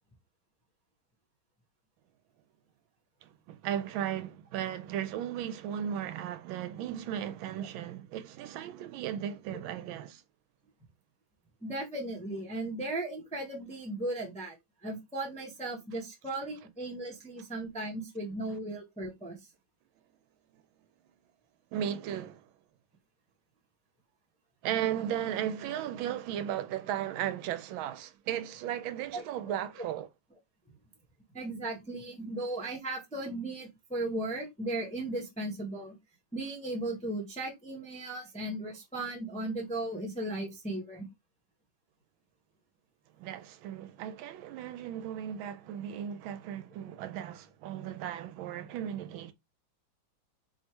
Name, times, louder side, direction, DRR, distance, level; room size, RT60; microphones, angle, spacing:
voice 1, 3.2-10.2 21.7-22.5 24.6-30.1 43.2-49.3, right 10 dB, 85° right, 1.4 m, -36 dB
voice 2, 11.6-14.6 14.8-19.4 29.1-29.2 29.8-29.9 31.3-36.0 36.3-41.1, right 2 dB, 5° left, 0.5 m, -36 dB
3.4 x 2.7 x 4.4 m
omnidirectional pair, 2.2 m